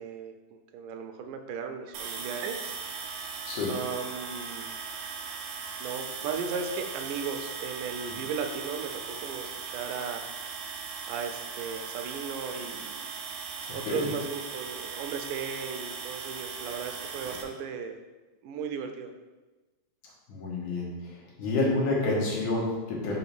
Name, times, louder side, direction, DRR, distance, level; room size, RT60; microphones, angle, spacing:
voice 1, 0.0-2.8 3.7-4.7 5.8-10.2 11.1-13.0 13.7-18.0 18.4-19.1, right 6 dB, 90° right, 6 dB, 2.3 m, -36 dB
sound 1, 1.9-17.4, right 5 dB, 75° right, 2.1 m, -38 dB
voice 2, 13.7-14.1 20.3-20.9 21.4-23.2, left 2 dB, 75° left, -4 dB, 3.0 m, -28 dB
6.2 x 3.9 x 6.0 m, 1.2 s
omnidirectional pair, 3.6 m